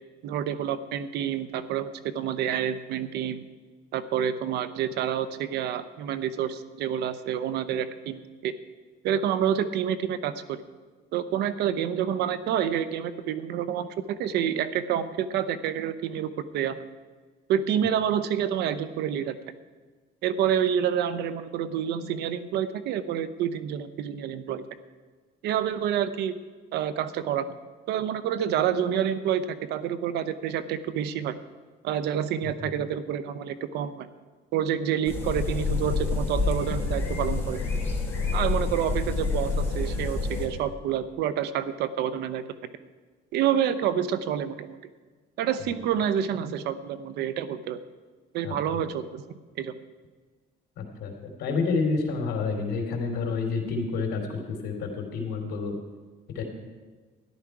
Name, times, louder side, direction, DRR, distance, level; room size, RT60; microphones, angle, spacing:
voice 1, 0.2-3.4 3.9-8.5 9.0-10.6 11.1-16.8 17.5-19.4 20.2-24.6 25.4-26.4 26.7-27.5 27.9-31.4 31.8-34.1 34.5-37.6 38.3-42.4 43.3-44.8 45.4-47.8 48.3-49.8, right 9 dB, 80° right, 13 dB, 0.8 m, -28 dB
sound 1, 35.0-40.5, left 3 dB, 15° left, 3.9 m, -28 dB
voice 2, 50.8-55.7 56.3-56.4, left 4 dB, 75° left, 2 dB, 3.1 m, -29 dB
13.5 x 11.5 x 4.8 m, 1.4 s
cardioid pair, 110°, 17 cm